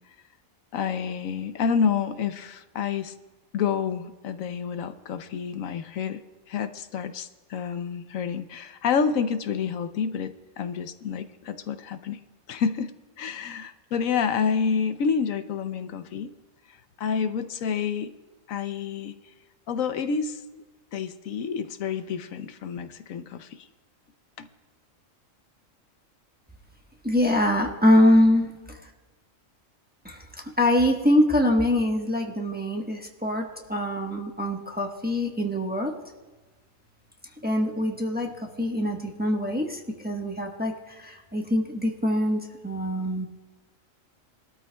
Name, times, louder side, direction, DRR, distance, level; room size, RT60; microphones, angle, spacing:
voice 1, 0.7-3.1 3.5-6.2 6.5-12.2 12.5-16.3 17.0-18.1 18.5-19.1 19.7-20.6 20.9-23.7 24.4-24.5, left 6 dB, 75° left, 10 dB, 1.1 m, -28 dB
voice 2, 27.0-28.8 30.0-35.9 37.4-38.3 38.6-43.3, left 1 dB, 10° right, 1 dB, 1.0 m, -24 dB
22.0 x 13.0 x 2.3 m, 1.3 s
omnidirectional pair, 1.4 m